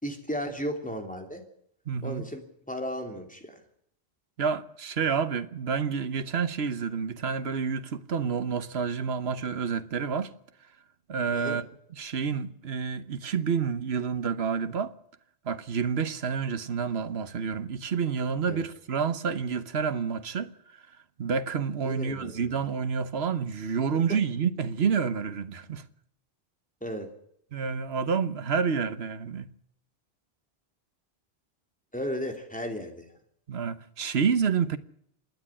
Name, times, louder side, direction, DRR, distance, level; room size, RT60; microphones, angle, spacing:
voice 1, 0.0-1.4 2.0-3.6 11.3-11.6 18.5-18.6 21.8-22.6 23.9-24.0 26.8-27.1 31.9-33.2, equal, 10° left, 3.0 m, -35 dB
voice 2, 1.9-2.2 4.4-10.3 11.1-11.6 12.0-14.9 15.4-20.5 21.2-25.8 27.5-29.5 33.5-34.8, right 6 dB, 85° right, 1.3 m, -29 dB
27.0 x 10.0 x 9.9 m
omnidirectional pair, 1.0 m